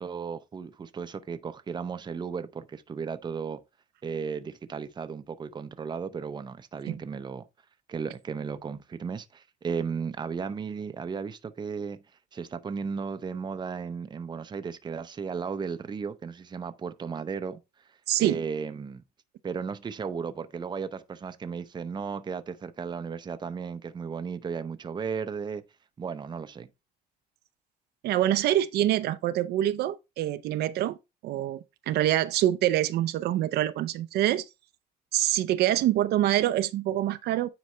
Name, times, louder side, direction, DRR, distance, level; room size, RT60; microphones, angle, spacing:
voice 1, 0.0-3.6 4.0-7.5 7.9-12.0 12.3-17.6 18.2-19.0 19.4-25.6 26.0-26.7, right 6 dB, 25° right, 0.6 m, -35 dB
voice 2, 18.1-18.4 28.0-31.0 31.2-34.4 35.1-37.5, right 13 dB, 75° right, 0.6 m, -25 dB
9.5 x 4.1 x 3.2 m
cardioid pair, 110°, 17 cm